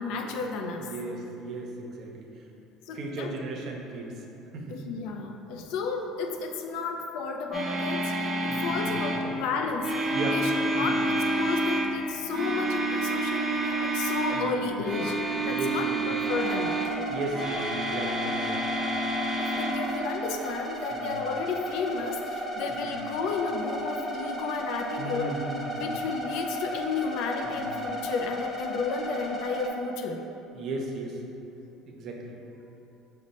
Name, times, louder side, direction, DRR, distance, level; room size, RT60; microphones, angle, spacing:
voice 1, 0.0-0.9 2.9-3.3 4.7-8.1 8.4-9.9 10.2-16.8 19.4-25.3 25.7-30.2, left 4 dB, 75° left, 3 dB, 0.4 m, -32 dB
voice 2, 0.8-2.3 2.9-4.1 4.5-4.8 8.5-9.4 10.1-10.4 10.8-11.0 14.3-14.7 15.5-16.0 17.1-18.8 20.9-21.2 22.7-22.9 25.0-25.8 27.4-27.7 30.5-31.2 31.9-32.3, right 2 dB, 55° right, 0 dB, 0.6 m, -36 dB
sound 1, 7.5-9.3 9.8-11.9 12.3-14.5 14.8-16.9 17.3-19.7, right 2 dB, 20° right, 0.7 m, -29 dB
sound 2, 16.2-29.7, equal, 20° left, 0.7 m, -35 dB
5.0 x 2.1 x 4.0 m, 2.9 s
supercardioid pair, 105°, 0 cm